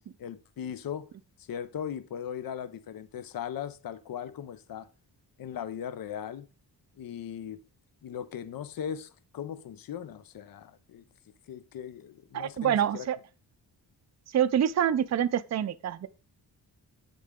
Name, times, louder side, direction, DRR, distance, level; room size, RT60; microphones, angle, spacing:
voice 1, 0.2-1.1 1.4-4.9 5.4-6.5 7.0-7.6 8.0-11.0 11.5-13.1, left 9 dB, 55° left, 0.6 m, -38 dB
voice 2, 12.3-13.2 14.3-16.1, right 9 dB, 40° right, 0.5 m, -26 dB
8.5 x 6.6 x 3.7 m
wide cardioid pair, 115°, 41 cm